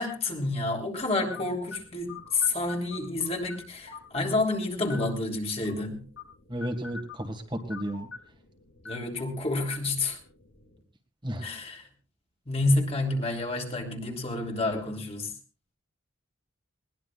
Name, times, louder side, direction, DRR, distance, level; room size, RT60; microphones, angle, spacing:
voice 1, 0.0-6.0 8.8-10.2 11.4-11.9 12.5-15.3, left 2 dB, 30° left, 2 dB, 3.1 m, -29 dB
sound 1, 1.3-10.8, left 3 dB, 80° left, 8.0 m, -46 dB
voice 2, 6.5-8.1 11.2-11.5, equal, 25° right, 2 dB, 1.9 m, -33 dB
21.0 x 19.5 x 2.4 m, 0.34 s
head